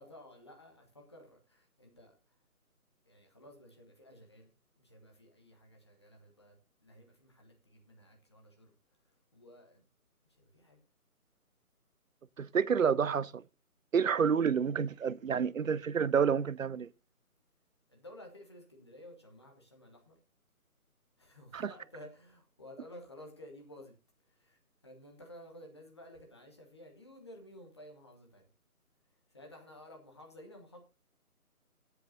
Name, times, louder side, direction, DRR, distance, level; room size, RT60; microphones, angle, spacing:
voice 1, 0.0-2.4 3.0-8.7 9.0-9.8 10.2-10.8 17.9-20.2 21.2-23.9 24.3-28.5 29.3-30.8, left 1 dB, 20° left, 1.2 m, -54 dB
voice 2, 12.4-13.4 13.9-16.9 21.5-21.7, right 7 dB, 65° right, 0.5 m, -29 dB
18.0 x 7.9 x 2.7 m
figure-of-eight pair, 160°, 45 cm